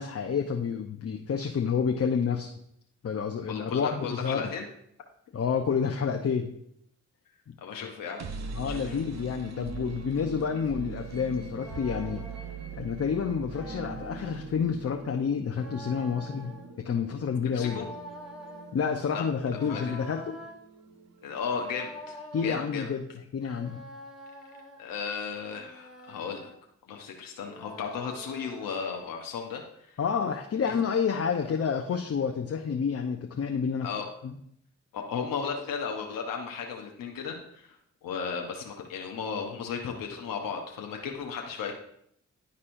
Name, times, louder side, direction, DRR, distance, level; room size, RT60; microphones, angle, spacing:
voice 1, 0.0-2.5 3.0-4.5 5.3-6.5 7.5-7.6 8.5-12.3 12.8-17.9 18.7-20.4 22.3-23.1 23.3-23.8 30.0-33.9 34.2-34.3, left 6 dB, 45° left, 3 dB, 0.7 m, -29 dB
voice 2, 3.5-4.7 7.6-8.2 8.6-9.0 17.5-17.9 19.1-19.2 19.5-20.0 21.2-22.9 24.8-26.5 26.9-30.0 30.6-30.7 33.8-34.1 34.9-41.7, left 6 dB, 75° left, 2 dB, 0.9 m, -35 dB
sound 1, 7.9-21.8, right 5 dB, 50° right, 0.9 m, -42 dB
sound 2, 11.5-12.6 13.5-14.4 15.5-16.7 17.5-18.7 19.5-20.6 21.5-22.6 23.5-24.9 25.5-26.5 27.5-28.9, left 1 dB, ahead, 1.8 m, -46 dB
11.0 x 4.2 x 2.6 m, 0.72 s
supercardioid pair, 45°, 33 cm